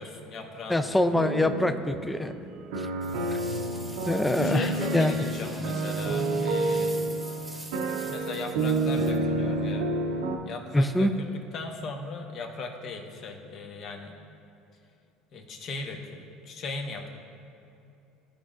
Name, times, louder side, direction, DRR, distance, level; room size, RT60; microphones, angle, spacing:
voice 1, 0.0-1.3 4.4-7.0 8.1-9.9 10.4-14.2 15.3-17.1, left 3 dB, 50° left, 3 dB, 1.0 m, -38 dB
voice 2, 0.7-2.3 2.8-2.9 3.3-3.4 4.1-4.7 4.9-5.2 10.7-11.1, left 1 dB, 10° left, 9 dB, 0.4 m, -24 dB
sound 1, 1.1-10.4, right 2 dB, 85° right, 0.7 m, -29 dB
sound 2, 3.0-9.7, right 1 dB, 10° right, 1.0 m, -46 dB
14.5 x 5.1 x 2.5 m, 2.8 s
supercardioid pair, 105°, 0 cm